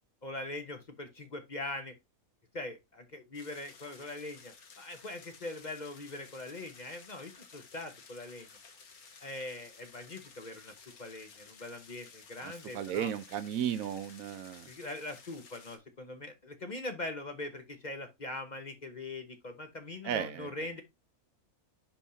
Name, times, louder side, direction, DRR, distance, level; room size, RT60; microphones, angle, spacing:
voice 1, 0.2-1.9 2.5-8.5 9.2-13.1 14.7-20.8, left 2 dB, 35° left, 1.0 m, -42 dB
sound 1, 3.3-15.8, left 5 dB, 85° left, 1.7 m, -55 dB
voice 2, 12.4-14.7 20.0-20.5, right 9 dB, 75° right, 1.0 m, -35 dB
10.0 x 3.5 x 2.7 m
omnidirectional pair, 1.5 m